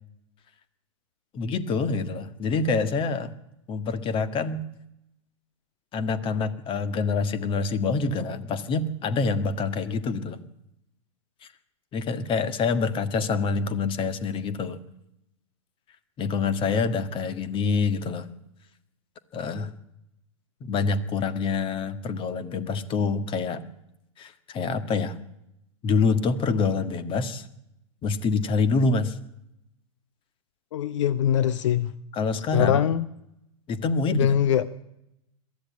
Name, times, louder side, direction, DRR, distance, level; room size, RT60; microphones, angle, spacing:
voice 1, 1.3-3.3 3.7-4.6 5.9-10.4 11.9-14.8 16.2-18.3 19.3-19.7 20.6-23.6 24.2-25.2 25.8-27.5 28.0-29.2 32.1-32.8 33.7-34.4, left 4 dB, 30° left, 12 dB, 1.7 m, -26 dB
voice 2, 30.7-31.9 32.5-33.1 34.1-34.7, left 10 dB, 65° left, 15 dB, 0.8 m, -22 dB
22.0 x 14.0 x 8.5 m, 0.84 s
hypercardioid pair, 105°, 17 cm